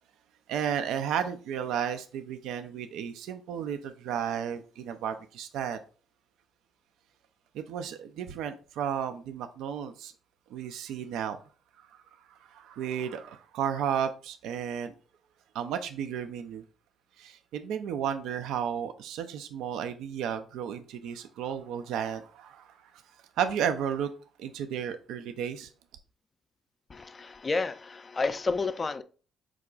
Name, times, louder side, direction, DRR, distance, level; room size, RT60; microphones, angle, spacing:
voice 1, 0.5-5.8 7.5-10.1 10.5-11.4 12.3-14.9 15.5-16.6 17.2-22.8 23.4-24.1 24.4-25.7, right 8 dB, 75° right, 0.4 m, -33 dB
voice 2, 26.9-29.0, left 3 dB, 35° left, 0.4 m, -30 dB
4.7 x 2.2 x 3.8 m
supercardioid pair, 60°, 0 cm